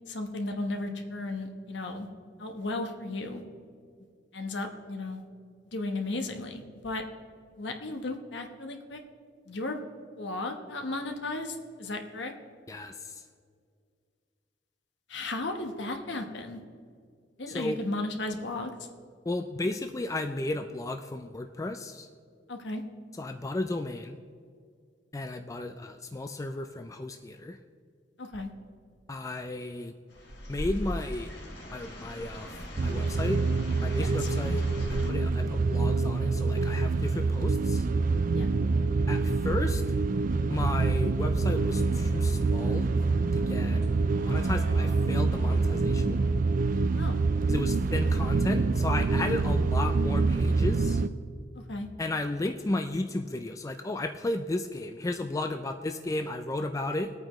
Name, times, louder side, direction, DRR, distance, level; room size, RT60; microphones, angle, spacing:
voice 1, 0.1-2.1 2.4-3.4 4.3-5.2 5.7-7.0 7.6-9.0 9.5-9.8 10.2-12.3 15.1-16.6 17.4-18.7 22.5-22.8 28.2-28.5 34.0-34.3 38.3-38.5 47.0-47.2 51.7-51.9, left 2 dB, 65° left, 4 dB, 1.2 m, -35 dB
voice 2, 12.7-13.2 17.5-17.8 19.3-22.1 23.2-24.2 25.1-27.6 29.1-29.9 30.5-31.3 31.7-33.4 33.8-34.6 34.9-37.9 39.1-39.8 40.5-42.9 43.3-43.8 44.3-46.2 47.5-51.0 52.0-57.1, left 2 dB, 15° left, 6 dB, 0.4 m, -34 dB
sound 1, 30.1-35.1, equal, 85° left, 2.8 m, -39 dB
sound 2, 32.8-51.1, right 3 dB, 45° right, 0.4 m, -26 dB
Bus, 41.2-46.2, left 1 dB, 85° right, 3.1 m, -42 dB
22.0 x 8.8 x 3.1 m, 2.1 s
head